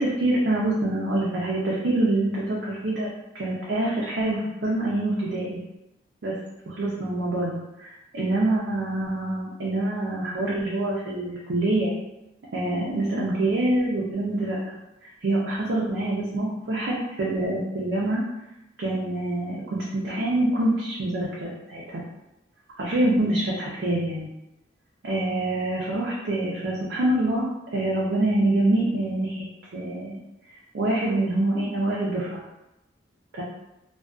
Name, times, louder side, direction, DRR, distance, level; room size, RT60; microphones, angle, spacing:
voice 1, 0.0-3.1 3.3-5.6 6.2-6.3 6.6-11.9 12.5-14.8 15.2-18.2 18.8-22.0 22.8-24.3 25.0-27.4 27.7-29.4 29.7-30.2 30.7-32.4 33.3-33.4, right 1 dB, 65° right, -5 dB, 0.5 m, -25 dB
2.5 x 2.2 x 2.3 m, 0.92 s
head